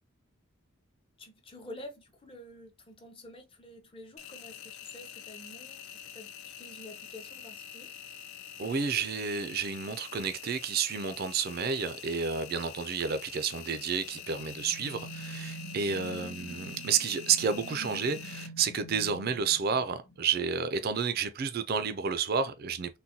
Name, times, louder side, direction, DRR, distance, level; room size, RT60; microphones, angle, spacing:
voice 1, 1.2-7.9 15.8-16.3, left 1 dB, 25° left, 0.6 m, -49 dB
Engine, 4.2-18.5, left 9 dB, 70° left, 0.3 m, -46 dB
voice 2, 8.6-23.0, right 6 dB, 45° right, 0.3 m, -31 dB
sound 1, 14.1-20.4, right 2 dB, 50° left, 1.1 m, -45 dB
3.8 x 2.2 x 2.7 m
head